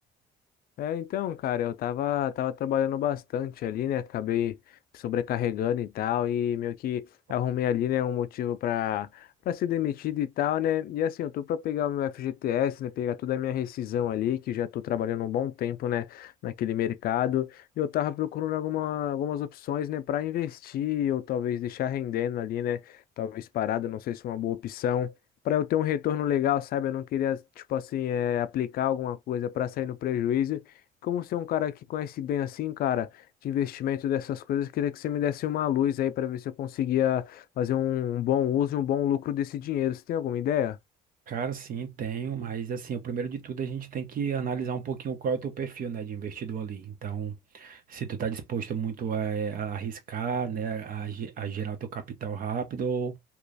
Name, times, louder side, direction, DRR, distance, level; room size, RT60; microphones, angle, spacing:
voice 1, 0.8-4.6 4.9-25.1 25.4-30.6 31.0-40.8, left 10 dB, 60° left, 0.4 m, -29 dB
voice 2, 41.3-53.2, right 6 dB, 55° right, 1.1 m, -32 dB
3.0 x 2.4 x 3.9 m
cardioid pair, 110°, 17 cm